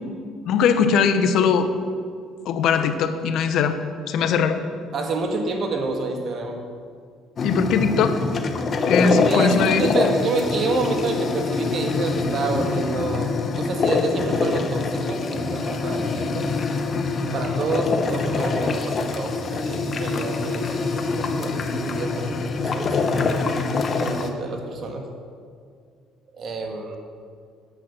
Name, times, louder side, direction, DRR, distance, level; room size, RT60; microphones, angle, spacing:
voice 1, 0.4-1.7 2.5-3.8 4.1-4.6 7.4-8.2 8.8-9.8, left 6 dB, 70° left, 9 dB, 0.8 m, -20 dB
voice 2, 4.9-6.6 9.0-16.5 17.3-22.4 22.6-23.4 24.0-25.1 26.3-27.0, right 3 dB, 55° right, 3 dB, 1.7 m, -28 dB
sound 1, 7.4-24.3, left 4 dB, 45° left, 0.9 m, -24 dB
8.9 x 7.6 x 6.0 m, 2.1 s
supercardioid pair, 85°, 0 cm